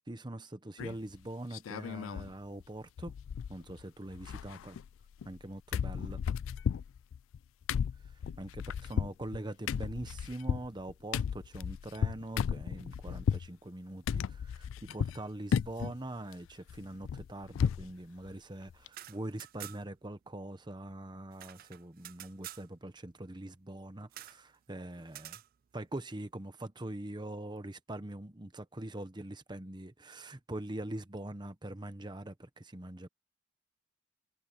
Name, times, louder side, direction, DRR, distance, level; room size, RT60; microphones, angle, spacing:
voice 1, 0.1-3.1 3.5-4.8 5.2-6.2 8.4-25.4 25.7-33.1, right 1 dB, 20° right, 1.0 m, -43 dB
sound 1, 0.8-1.2 1.5-2.3 2.6-2.7 3.0-3.8 4.1-5.4 5.7-13.5 14.1-15.2 15.5-16.0 16.3-17.9 18.3-18.4 18.7-18.9, left 7 dB, 75° left, 0.3 m, -34 dB
sound 2, 18.8-20.0 20.3-20.4 20.7-22.7 24.1-24.4 25.1-25.5, right 14 dB, 45° right, 0.3 m, -48 dB
head